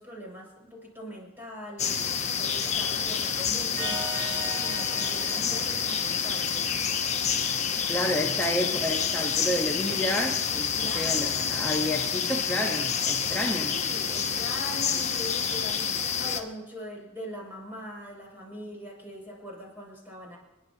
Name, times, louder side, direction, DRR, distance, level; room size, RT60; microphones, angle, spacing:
voice 1, 0.0-6.7 10.7-11.5 13.3-20.4, equal, 10° right, -2 dB, 6.5 m, -42 dB
sound 1, 1.8-16.4, left 7 dB, 35° left, 1.1 m, -28 dB
sound 2, 3.8-7.2, right 1 dB, 45° right, 5.4 m, -39 dB
voice 2, 7.9-13.7, left 1 dB, 10° left, -1 dB, 1.3 m, -30 dB
30.0 x 11.0 x 3.0 m, 1.1 s
head